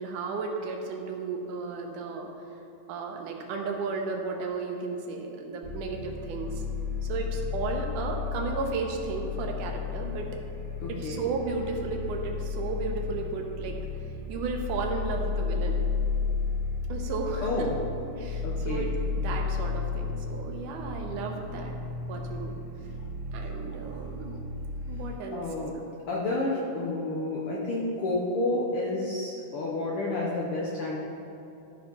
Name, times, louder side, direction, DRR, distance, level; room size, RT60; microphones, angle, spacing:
voice 1, 0.0-2.3 2.9-6.6 7.0-10.3 10.9-13.8 14.3-15.8 16.9-17.7 18.2-18.9 19.2-21.8 22.1-22.5 23.3-24.3 24.9-25.4, right 4 dB, 90° right, 2 dB, 2.4 m, -34 dB
sound 1, 5.6-25.1, left 4 dB, 55° right, 3.2 m, -33 dB
voice 2, 10.8-11.2 17.4-17.7 18.4-18.9 25.3-25.8 26.1-31.0, left 2 dB, 70° left, -4 dB, 1.4 m, -30 dB
13.0 x 4.4 x 5.3 m, 2.8 s
omnidirectional pair, 3.6 m